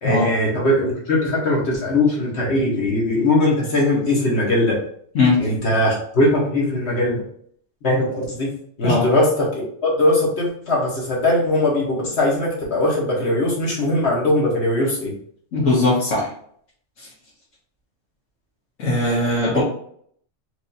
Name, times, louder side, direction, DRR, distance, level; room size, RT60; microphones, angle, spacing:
voice 1, 0.0-4.8 5.4-7.2 7.8-8.5 8.8-15.1 19.5-19.6, left 1 dB, 60° left, -3 dB, 1.3 m, -20 dB
voice 2, 15.5-16.3 18.8-19.6, left 2 dB, 80° left, -8 dB, 1.5 m, -19 dB
4.5 x 2.6 x 2.6 m, 0.63 s
omnidirectional pair, 1.3 m